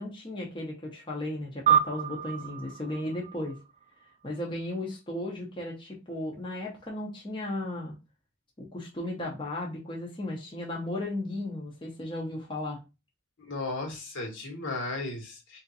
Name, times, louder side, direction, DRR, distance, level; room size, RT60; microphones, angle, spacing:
voice 1, 0.0-3.6 4.2-7.9 8.6-12.8, left 1 dB, 25° left, -3 dB, 0.9 m, -35 dB
sound 1, 1.7-4.4, right 9 dB, 35° right, 0.4 m, -29 dB
voice 2, 13.5-15.6, left 2 dB, 65° left, 1 dB, 1.5 m, -35 dB
3.5 x 2.7 x 4.1 m, 0.27 s
head